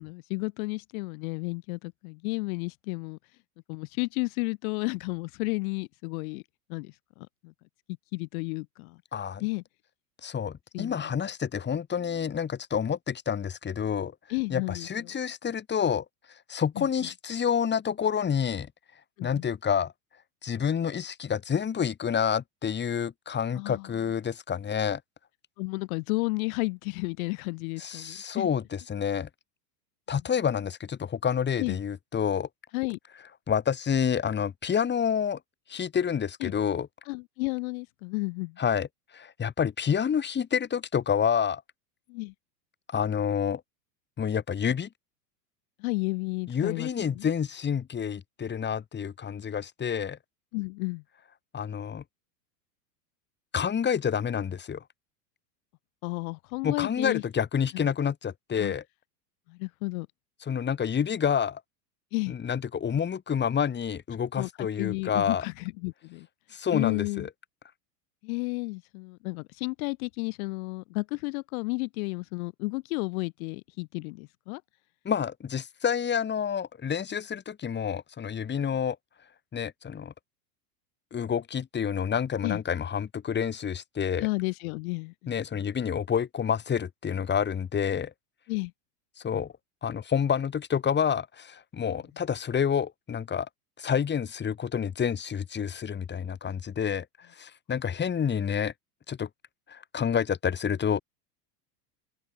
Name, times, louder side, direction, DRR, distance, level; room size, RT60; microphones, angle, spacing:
voice 1, 0.0-3.2 3.7-6.4 6.7-7.5 8.1-9.0 9.4-9.6 10.7-11.1 14.3-15.1 16.8-16.9 19.2-19.5 23.5-23.9 25.6-28.5 31.6-31.8 32.7-33.0 36.4-36.5 37.1-38.6 42.1-42.3 45.8-47.3 50.5-51.0 56.0-57.2 57.7-57.9 58.6-58.8 59.5-60.1 62.1-62.4 64.4-66.3 66.7-67.3 68.2-74.6 82.4-82.6 84.2-85.6 88.5-88.7, left 28 dB, 60° left, 1.7 m, -32 dB
voice 2, 9.1-9.4 10.2-14.1 14.5-16.1 16.5-18.7 19.2-19.9 20.4-25.0 27.8-29.3 30.1-32.5 33.5-35.4 35.7-36.9 38.6-38.9 39.1-41.6 42.9-43.6 44.2-44.9 46.5-50.2 51.5-52.0 53.5-54.8 56.6-58.8 60.5-61.6 62.3-65.5 66.5-67.3 75.1-79.0 79.5-80.1 81.1-84.3 85.3-88.1 89.2-89.5 89.8-93.5 93.8-97.1 97.4-98.7 99.1-99.3 99.7-101.0, left 7 dB, 20° left, 3.5 m, -28 dB
open air
supercardioid pair, 120°, 48 cm